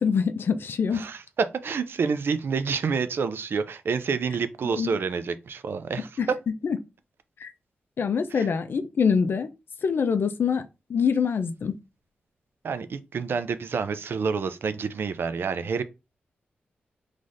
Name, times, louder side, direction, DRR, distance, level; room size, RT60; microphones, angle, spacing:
voice 1, 0.0-1.1 4.6-5.0 6.2-6.3 6.6-6.8 7.4-7.5 8.0-9.5 9.8-10.6 10.9-11.7, left 6 dB, 65° left, 0.5 m, -24 dB
voice 2, 0.9-6.1 8.4-8.5 12.6-15.8, right 5 dB, 70° right, 0.4 m, -28 dB
3.9 x 3.2 x 2.5 m
cardioid pair, 70°, 4 cm